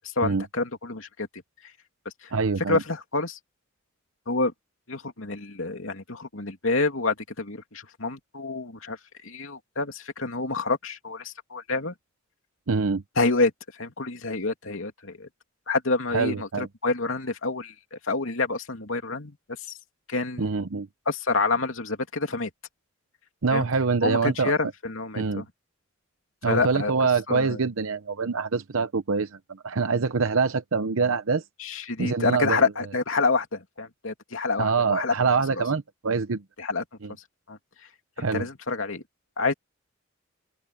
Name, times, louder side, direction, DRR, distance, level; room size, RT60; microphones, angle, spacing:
voice 1, 0.0-1.3 2.0-2.3 2.7-3.4 4.3-4.5 4.9-11.9 13.2-13.5 13.8-15.3 15.7-19.8 20.1-20.5 21.1-22.5 23.5-23.7 24.0-25.4 26.5-26.9 27.3-27.6 31.6-35.1 35.6-35.7 36.6-36.8 37.5-37.6 38.2-39.0 39.4-39.5, left 3 dB, 75° left, 2.9 m, -28 dB
voice 2, 2.3-2.8 12.7-13.0 16.1-16.7 20.4-20.9 23.4-24.5 25.2-25.4 26.4-31.4 32.0-32.6 34.6-36.4 37.0-37.1 38.2-38.4, right 4 dB, 85° right, 0.8 m, -25 dB
open air
head